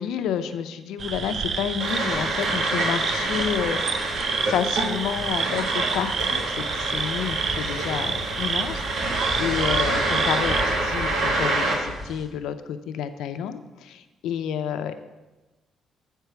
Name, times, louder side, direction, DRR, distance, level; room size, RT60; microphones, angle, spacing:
voice 1, 0.0-4.1 4.4-15.0, left 8 dB, 85° left, 10 dB, 0.5 m, -30 dB
sound 1, 1.0-10.6, right 6 dB, 50° right, 0.4 m, -29 dB
sound 2, 1.8-11.7, right 2 dB, 80° right, 1.9 m, -27 dB
sound 3, 2.6-12.2, left 1 dB, 15° right, 2.5 m, -39 dB
7.4 x 4.5 x 6.9 m, 1.1 s
cardioid pair, 90°, 0 cm